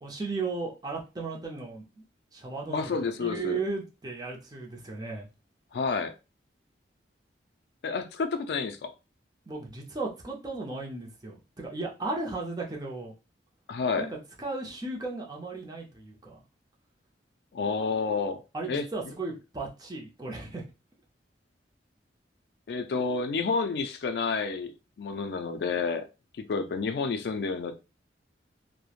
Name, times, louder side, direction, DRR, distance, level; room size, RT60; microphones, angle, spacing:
voice 1, 0.0-2.0 2.3-5.3 9.5-13.2 14.0-16.4 18.5-20.6, right 3 dB, 20° right, 0.6 m, -35 dB
voice 2, 2.7-3.6 5.7-6.1 7.8-8.9 13.7-14.1 17.5-18.4 18.7-18.9 22.7-26.1 26.4-27.8, left 4 dB, 60° left, 0.3 m, -30 dB
3.0 x 2.0 x 2.4 m
head